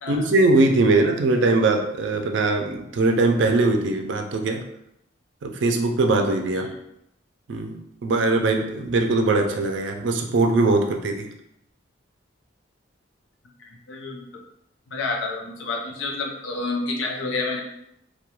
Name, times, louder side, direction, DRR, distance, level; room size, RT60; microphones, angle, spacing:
voice 1, 0.1-4.6 5.4-6.7 7.5-7.7 8.0-11.3, right 2 dB, 75° right, 4 dB, 0.4 m, -21 dB
voice 2, 13.9-14.3 14.9-17.6, left 3 dB, 90° left, 0 dB, 0.5 m, -29 dB
2.2 x 2.2 x 2.9 m, 0.77 s
head